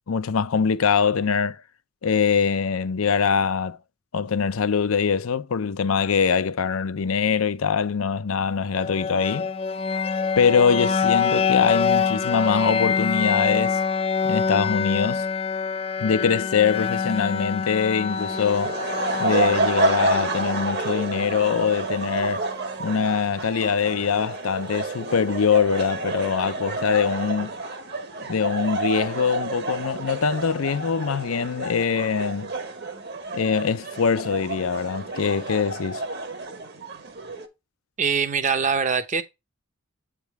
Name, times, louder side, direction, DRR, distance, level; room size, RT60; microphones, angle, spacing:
voice 1, 0.1-1.6 2.0-3.8 4.1-9.5 10.4-13.8 14.2-15.3 16.0-18.8 19.2-22.5 22.8-27.5 28.2-32.5 33.3-36.0, left 6 dB, 80° left, 0.5 m, -23 dB
sound 1, 8.7-22.7, left 6 dB, 30° left, 0.4 m, -26 dB
sound 2, 18.1-37.5, right 2 dB, 50° right, 1.1 m, -29 dB
voice 2, 38.0-39.2, right 5 dB, 35° right, 0.7 m, -23 dB
8.2 x 3.6 x 4.6 m
head